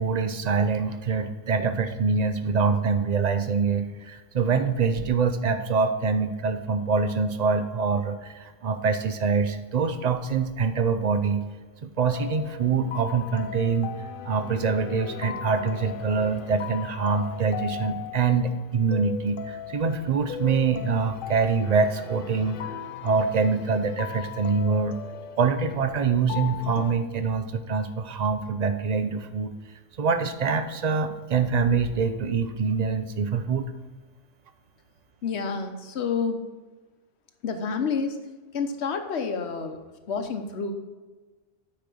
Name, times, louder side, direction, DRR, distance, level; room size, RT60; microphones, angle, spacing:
voice 1, 0.0-11.4 11.8-13.9 14.2-25.0 25.4-29.5 30.0-33.6, right 5 dB, 45° right, 9 dB, 0.7 m, -25 dB
sound 1, 12.1-26.9, left 9 dB, 60° left, 0.7 m, -38 dB
voice 2, 35.2-36.4 37.4-38.2 38.5-39.8 40.1-40.7, left 5 dB, 85° left, 7 dB, 1.2 m, -29 dB
8.8 x 5.2 x 6.1 m, 1.3 s
omnidirectional pair, 1.1 m